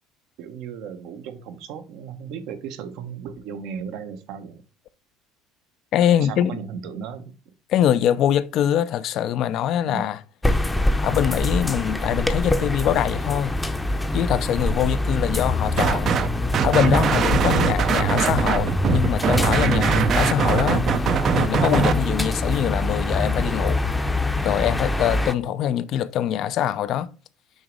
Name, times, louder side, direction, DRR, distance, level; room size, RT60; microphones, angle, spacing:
voice 1, 0.4-4.6 6.1-7.4 8.0-8.2 9.9-10.1 14.5-14.7 25.0-25.2, right 7 dB, 70° right, 0.9 m, -36 dB
voice 2, 5.9-6.6 7.7-10.2 11.0-13.5 14.1-16.1 16.6-20.8 21.3-23.8 24.4-27.1, left 10 dB, 60° left, 0.5 m, -23 dB
sound 1, 10.4-25.3, left 1 dB, 10° left, 0.7 m, -24 dB
sound 2, 15.8-16.3 16.5-21.9, right 7 dB, 50° right, 0.6 m, -22 dB
6.3 x 3.0 x 5.1 m
supercardioid pair, 85°, 0 cm